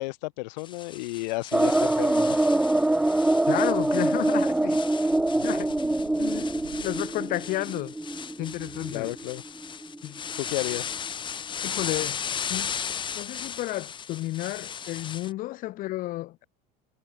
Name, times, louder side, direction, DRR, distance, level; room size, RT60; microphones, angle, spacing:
voice 1, 0.0-2.5 5.3-5.4 8.9-9.4 10.4-11.0, left 22 dB, 85° left, 1.3 m, -33 dB
sound 1, 0.6-15.3, left 7 dB, 20° left, 4.3 m, -36 dB
sound 2, 1.5-10.0 10.4-10.5 10.7-10.8, right 2 dB, 5° right, 0.5 m, -24 dB
voice 2, 3.5-5.1 5.4-5.7 6.2-6.5 6.8-7.9 8.4-9.1 10.0-10.2 11.6-12.2 12.5-12.7 13.1-16.4, left 17 dB, 40° left, 1.5 m, -32 dB
sound 3, 5.0-7.5 8.4-9.4, right 21 dB, 85° right, 5.2 m, -49 dB
cardioid pair, 160°, 21 cm